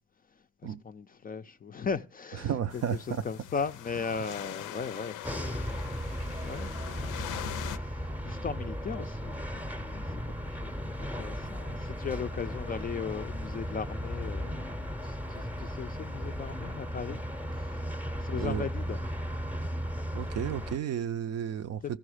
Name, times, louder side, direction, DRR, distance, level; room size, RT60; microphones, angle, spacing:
voice 1, 0.6-10.2 10.4-14.6 15.0-17.2 17.5-19.0, left 6 dB, 30° left, 0.4 m, -38 dB
voice 2, 2.4-3.2 18.3-18.7 20.1-21.8, right 9 dB, 55° right, 0.5 m, -32 dB
sound 1, 2.7-7.8, left 12 dB, 85° left, 0.5 m, -42 dB
sound 2, 5.2-20.8, equal, 5° right, 0.6 m, -36 dB
14.0 x 5.3 x 4.9 m
cardioid pair, 90°, 30 cm